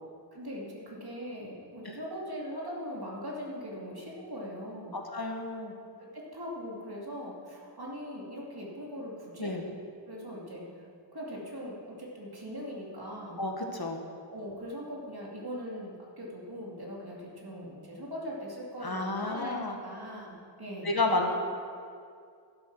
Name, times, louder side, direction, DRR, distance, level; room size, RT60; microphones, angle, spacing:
voice 1, 0.3-5.0 6.0-9.6 10.1-10.7 11.1-13.4 14.3-21.3, equal, 55° right, -4 dB, 2.6 m, -41 dB
voice 2, 4.9-5.7 9.4-9.6 13.4-14.1 18.8-19.8 20.8-21.3, left 2 dB, 55° left, 2 dB, 1.4 m, -31 dB
12.0 x 8.2 x 6.1 m, 2.3 s
wide cardioid pair, 45°, 44 cm